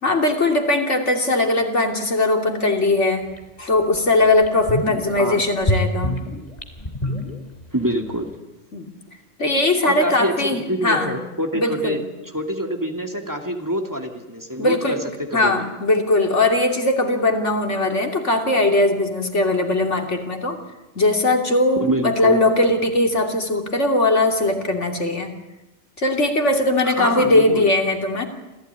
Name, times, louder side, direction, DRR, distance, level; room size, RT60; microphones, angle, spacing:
voice 1, 0.0-3.3 3.6-6.2 8.7-8.9 9.4-11.1 11.5-12.0 14.6-15.0 15.3-20.6 20.9-25.3 26.0-28.3, left 2 dB, 85° left, 3 dB, 3.2 m, -20 dB
sound 1, 3.4-3.5 3.9-4.0 4.4-5.2 5.6-8.2, left 1 dB, 35° left, 3.0 m, -25 dB
voice 2, 7.7-8.3 9.8-15.7 21.8-22.4 26.8-27.7, equal, 15° right, 3 dB, 2.6 m, -26 dB
27.5 x 16.0 x 9.7 m, 1.0 s
omnidirectional pair, 1.2 m